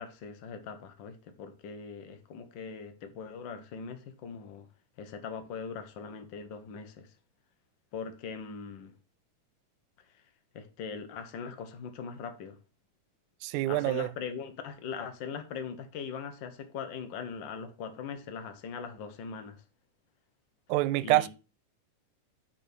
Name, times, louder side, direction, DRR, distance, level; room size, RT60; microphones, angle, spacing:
voice 1, 0.0-4.7 5.0-7.1 7.9-8.9 10.5-12.6 13.7-19.6 21.0-21.3, left 6 dB, 65° left, 1.1 m, -41 dB
voice 2, 13.4-14.1 20.7-21.3, right 17 dB, 80° right, 1.8 m, -26 dB
6.7 x 6.2 x 6.2 m
omnidirectional pair, 3.8 m